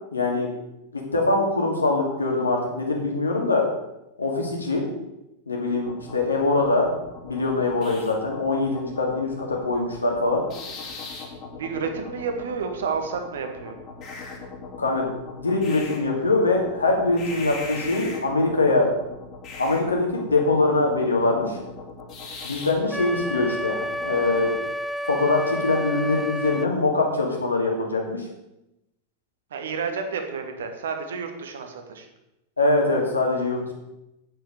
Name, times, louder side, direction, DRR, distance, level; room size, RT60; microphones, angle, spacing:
voice 1, 0.1-0.5 0.9-3.6 4.2-4.9 5.5-10.4 14.8-18.9 19.6-21.6 22.4-24.5 25.1-28.2 32.6-33.7, left 2 dB, 75° left, 0 dB, 2.6 m, -23 dB
sound 1, 5.8-24.6, left 4 dB, 35° left, 3.0 m, -40 dB
voice 2, 11.6-13.7 29.5-32.1, right 5 dB, 60° right, 5 dB, 1.7 m, -30 dB
Wind instrument woodwind instrument, 22.9-26.7, equal, ahead, 0.5 m, -30 dB
8.4 x 7.7 x 6.7 m, 0.91 s
figure-of-eight pair, 90°, 0 cm